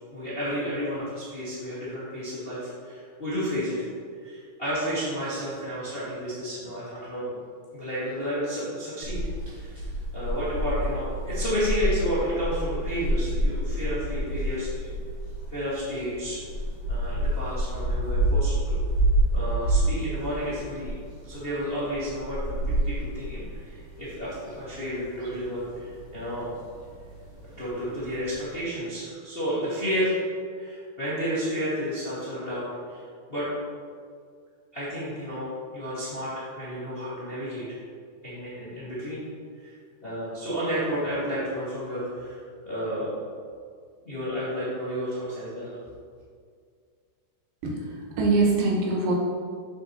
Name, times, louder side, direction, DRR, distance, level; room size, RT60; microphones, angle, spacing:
voice 1, 0.1-3.9 4.1-7.3 7.7-9.2 9.6-9.8 10.1-14.9 15.5-16.4 16.9-18.8 19.3-21.0 21.2-22.4 22.6-26.5 27.6-30.2 30.5-33.0 33.3-33.5 34.7-37.6 38.2-39.2 39.6-39.7 40.0-43.1 44.0-45.8, equal, 30° left, -10 dB, 1.0 m, -31 dB
sound 1, 9.0-28.6, right 1 dB, 45° right, 0.9 m, -28 dB
voice 2, 47.6-49.1, right 3 dB, 85° right, -2 dB, 2.8 m, -24 dB
7.5 x 6.7 x 2.9 m, 2.1 s
omnidirectional pair, 3.8 m